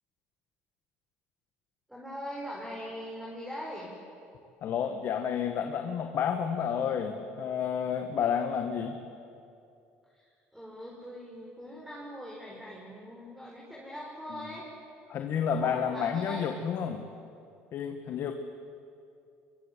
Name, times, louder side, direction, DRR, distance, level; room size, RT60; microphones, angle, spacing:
voice 1, 1.9-3.9 10.1-14.6 15.6-16.5, equal, ahead, -4 dB, 5.6 m, -41 dB
voice 2, 4.6-9.0 15.1-17.0 17.7-18.3, left 7 dB, 55° left, 5 dB, 1.7 m, -30 dB
24.0 x 24.0 x 8.4 m, 2.5 s
supercardioid pair, 95°, 5 cm